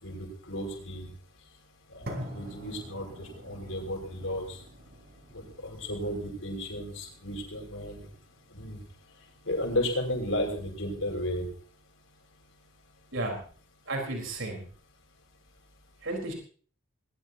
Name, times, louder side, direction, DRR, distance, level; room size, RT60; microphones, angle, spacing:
voice 1, 0.0-1.1 1.9-4.6 5.3-8.1 8.5-8.8 9.5-11.5, left 1 dB, 75° left, 2 dB, 5.7 m, -33 dB
sound 1, 2.1-10.1, equal, 50° right, 3.6 m, -46 dB
voice 2, 13.9-14.6 16.0-16.3, right 2 dB, 70° right, 1 dB, 4.2 m, -33 dB
20.5 x 19.5 x 2.9 m, 0.43 s
head